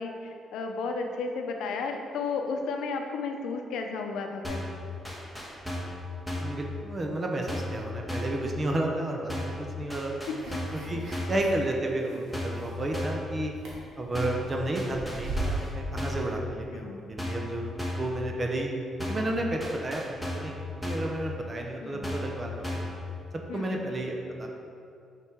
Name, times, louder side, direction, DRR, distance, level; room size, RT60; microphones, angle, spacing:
voice 1, 0.0-4.6 10.5-10.6 10.9-11.0 16.7-17.0 21.8-22.1 23.5-23.9, left 4 dB, 85° left, 4 dB, 0.6 m, -33 dB
sound 1, 4.4-4.8 5.0-6.0 6.3-6.6 7.5-7.8 8.1-8.4 9.3-9.6 9.9-10.8 11.1-11.4 12.3-12.6 12.9-13.3 14.1-14.5 14.7-15.7 16.0-16.3 17.2-17.5 17.8-18.1 19.0-19.3 19.6-20.5 20.8-21.1 22.0-22.4 22.6-23.0, left 1 dB, 5° right, 1.4 m, -34 dB
voice 2, 6.4-10.3 10.7-11.0 11.3-13.5 14.0-18.7 19.0-20.0 20.3-22.8 23.5-24.5, right 1 dB, 30° right, 1 dB, 0.7 m, -32 dB
sound 2, 10.4-11.6 12.0-13.2 13.5-15.7, right 2 dB, 70° right, 1.4 m, -37 dB
5.4 x 4.9 x 4.5 m, 2.4 s
cardioid pair, 90°, 0 cm